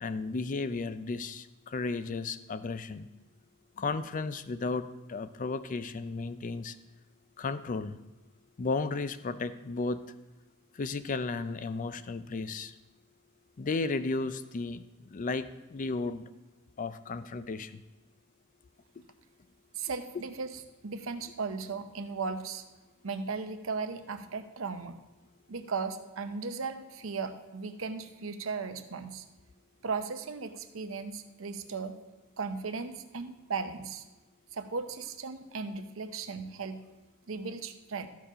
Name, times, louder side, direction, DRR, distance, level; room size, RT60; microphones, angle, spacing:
voice 1, 0.0-3.1 3.8-6.8 7.4-8.0 8.6-10.1 10.8-12.7 13.6-16.2 16.8-17.8, left 3 dB, 40° left, 13 dB, 0.4 m, -34 dB
voice 2, 19.7-22.6 23.0-25.0 25.5-29.2 29.8-31.9 32.4-34.0 34.5-36.8 37.3-38.1, right 4 dB, 70° right, 9 dB, 0.7 m, -36 dB
13.5 x 4.7 x 5.0 m, 1.1 s
head